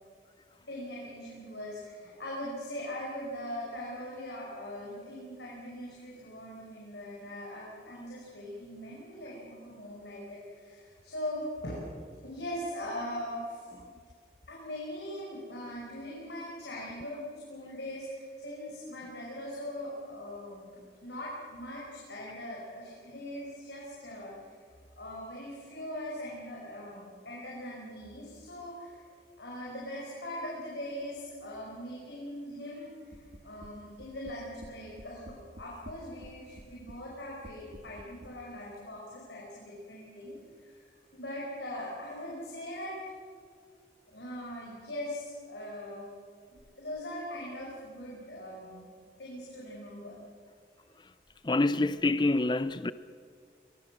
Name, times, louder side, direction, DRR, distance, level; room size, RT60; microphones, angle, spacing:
voice 1, 0.7-11.8 12.2-13.7 14.5-24.3 25.0-29.0 29.4-40.7 41.1-43.0 44.1-46.1 46.8-48.9 49.2-50.2, left 1 dB, 85° left, 5.6 m, -41 dB
sound 1, 33.1-33.7 34.0-34.7 35.0-36.3 36.6-37.0 37.4-38.3, right 1 dB, 75° right, 2.2 m, -48 dB
voice 2, 51.4-52.9, left 2 dB, 25° left, 0.5 m, -26 dB
23.0 x 22.5 x 6.4 m
head